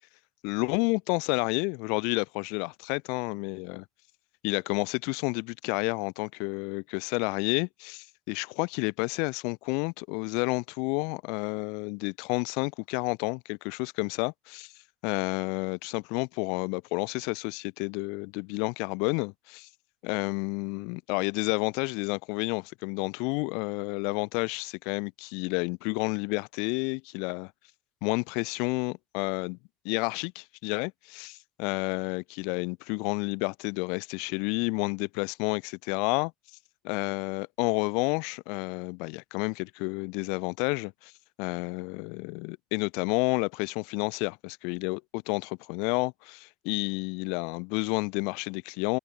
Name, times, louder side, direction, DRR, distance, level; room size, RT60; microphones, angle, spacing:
voice 1, 0.4-3.8 4.4-14.7 15.0-19.7 20.0-27.5 28.0-29.6 29.8-36.3 36.8-41.1 41.4-49.0, left 34 dB, 65° left, 1.1 m, -30 dB
hypercardioid pair, 70°, 0 cm